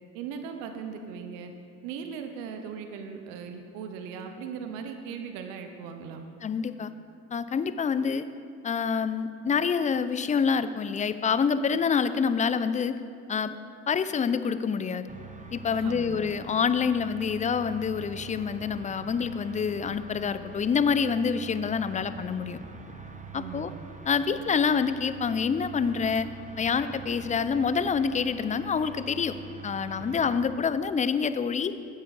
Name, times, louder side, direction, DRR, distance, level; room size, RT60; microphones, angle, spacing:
voice 1, 0.1-1.5 1.8-6.2 15.7-16.2 23.4-23.8, right 6 dB, 80° right, 6 dB, 0.8 m, -38 dB
voice 2, 6.4-6.9 7.3-8.3 8.6-13.0 13.3-13.6 13.9-15.0 15.5-22.6 23.3-23.7 24.1-26.3 26.6-29.4 29.6-31.7, left 6 dB, 25° left, 13 dB, 0.4 m, -27 dB
sound 1, 15.1-30.7, right 5 dB, 25° right, 1.0 m, -45 dB
9.5 x 8.0 x 4.1 m, 2.3 s
supercardioid pair, 70°, 32 cm